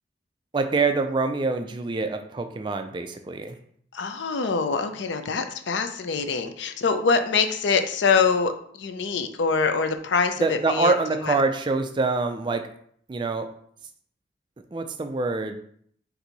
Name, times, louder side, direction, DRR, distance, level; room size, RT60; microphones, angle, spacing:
voice 1, 0.5-3.6 10.4-12.6 13.1-13.5 14.7-15.6, right 3 dB, 25° right, 7 dB, 0.3 m, -25 dB
voice 2, 3.9-11.0 11.2-11.4, left 5 dB, 75° left, 8 dB, 0.5 m, -24 dB
4.4 x 2.7 x 4.0 m, 0.63 s
head